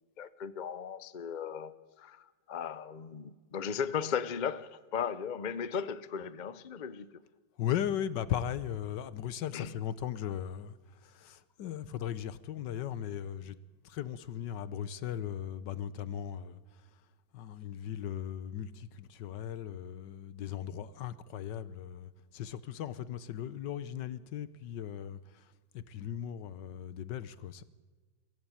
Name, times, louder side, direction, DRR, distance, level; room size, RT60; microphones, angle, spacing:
voice 1, 0.2-1.7 2.0-7.1 9.5-9.7, left 7 dB, 55° left, 0.5 m, -36 dB
voice 2, 7.6-13.6 13.8-16.8 17.3-27.6, left 10 dB, 70° left, 1.5 m, -38 dB
23.5 x 16.0 x 9.1 m
omnidirectional pair, 2.0 m